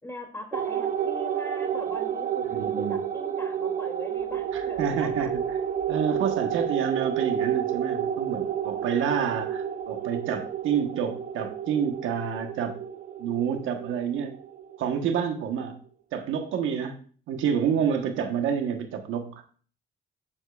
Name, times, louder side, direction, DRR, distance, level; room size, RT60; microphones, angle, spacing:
voice 1, 0.0-5.3, left 1 dB, 15° left, 2 dB, 2.7 m, -42 dB
sound 1, 0.5-15.3, right 9 dB, 45° right, 0.6 m, -30 dB
voice 2, 2.5-3.0 4.5-5.6 5.9-12.8 13.2-14.4 14.8-15.8 16.1-19.4, right 7 dB, 85° right, 5 dB, 1.2 m, -28 dB
9.9 x 7.3 x 2.4 m, 0.42 s
cardioid pair, 90°, 20 cm